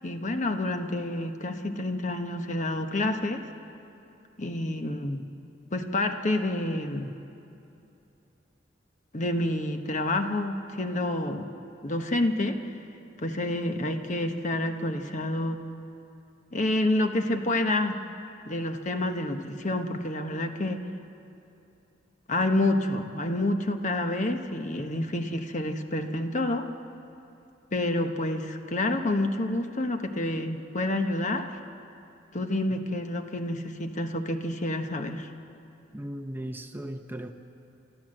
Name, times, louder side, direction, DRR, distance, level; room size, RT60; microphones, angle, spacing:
voice 1, 0.0-3.4 4.4-5.3 5.7-7.1 9.1-11.5 11.8-12.6 13.2-15.6 16.5-18.0 18.4-20.8 22.3-26.7 27.7-31.6 32.3-35.3, left 1 dB, 40° left, 6 dB, 1.1 m, -28 dB
voice 2, 35.9-37.3, right 1 dB, 10° right, 6 dB, 0.8 m, -37 dB
29.5 x 13.5 x 7.7 m, 2.8 s
head